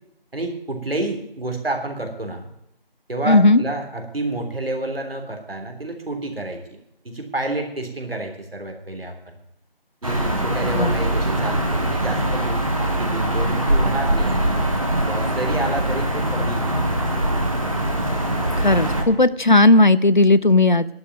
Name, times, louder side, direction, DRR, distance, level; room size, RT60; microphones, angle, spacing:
voice 1, 0.3-2.5 3.1-6.8 7.0-9.4 10.0-14.7 15.0-16.8, right 2 dB, 75° right, 4 dB, 3.5 m, -29 dB
voice 2, 3.3-3.6 10.7-11.0 18.6-20.9, left 2 dB, 55° left, 17 dB, 0.5 m, -15 dB
sound 1, 10.0-19.0, right 1 dB, 35° right, 1.6 m, -22 dB
11.5 x 7.1 x 9.0 m, 0.80 s
figure-of-eight pair, 175°, 30 cm